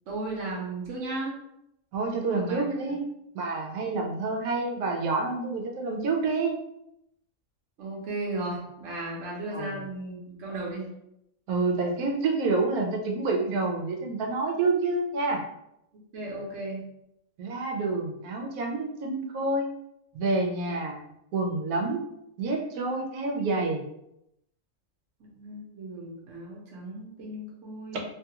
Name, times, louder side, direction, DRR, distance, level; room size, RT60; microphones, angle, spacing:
voice 1, 0.1-1.4 2.2-2.7 7.8-10.9 15.9-16.9 25.2-28.0, right 2 dB, 65° right, -3 dB, 1.1 m, -35 dB
voice 2, 1.9-3.1 3.3-6.6 9.5-9.7 11.5-15.4 17.4-19.7 20.1-21.0 21.3-22.0 22.4-23.8, right 3 dB, 85° right, 2 dB, 1.1 m, -28 dB
3.1 x 2.3 x 2.8 m, 0.81 s
omnidirectional pair, 1.5 m